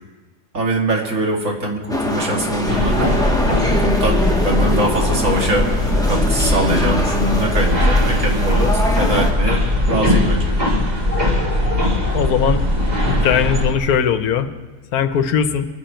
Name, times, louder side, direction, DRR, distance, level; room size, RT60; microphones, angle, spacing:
voice 1, 0.5-3.0 3.6-5.7 6.1-10.5, right 1 dB, 50° right, 0 dB, 2.4 m, -22 dB
sound 1, 1.9-9.3, left 1 dB, 5° left, 1.1 m, -23 dB
sound 2, 2.7-13.7, left 1 dB, 25° right, 1.9 m, -19 dB
voice 2, 12.1-12.6 13.0-14.5 14.9-15.7, left 8 dB, 70° left, 10 dB, 1.3 m, -19 dB
24.5 x 10.0 x 4.5 m, 1.4 s
omnidirectional pair, 1.7 m